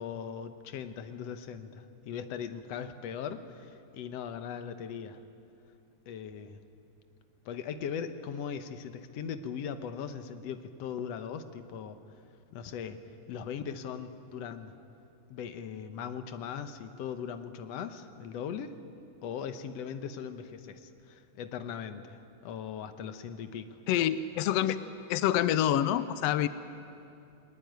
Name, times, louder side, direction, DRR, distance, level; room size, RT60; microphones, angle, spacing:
voice 1, 0.0-5.2 6.1-6.6 7.4-12.0 12.5-13.0 13.3-14.7 15.3-18.7 19.2-22.2 22.4-23.7, left 7 dB, 65° left, 9 dB, 1.8 m, -39 dB
voice 2, 23.9-24.8 25.1-26.5, left 11 dB, 85° left, 13 dB, 1.4 m, -26 dB
21.0 x 20.0 x 9.4 m, 2.7 s
omnidirectional pair, 3.6 m